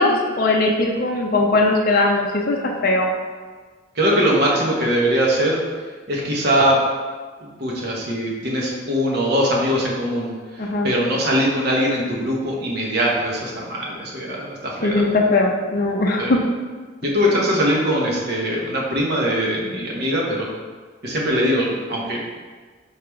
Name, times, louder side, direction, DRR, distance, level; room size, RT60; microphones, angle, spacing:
voice 1, 0.0-3.1 10.6-10.9 14.8-16.4, left 2 dB, 45° left, -1 dB, 0.4 m, -19 dB
voice 2, 3.9-5.6 6.1-6.8 7.4-15.2 16.2-16.4 17.0-20.5 21.0-22.3, equal, 55° right, -3 dB, 1.0 m, -21 dB
4.8 x 3.2 x 3.4 m, 1.4 s
head